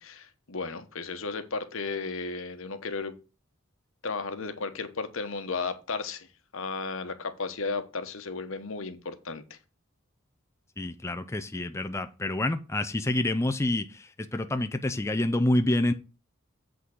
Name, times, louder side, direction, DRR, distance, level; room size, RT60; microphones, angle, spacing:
voice 1, 0.0-3.2 4.0-6.3 6.5-9.6, left 4 dB, 70° left, 1.1 m, -34 dB
voice 2, 10.8-15.9, left 1 dB, 15° left, 0.4 m, -27 dB
8.3 x 3.8 x 6.3 m
head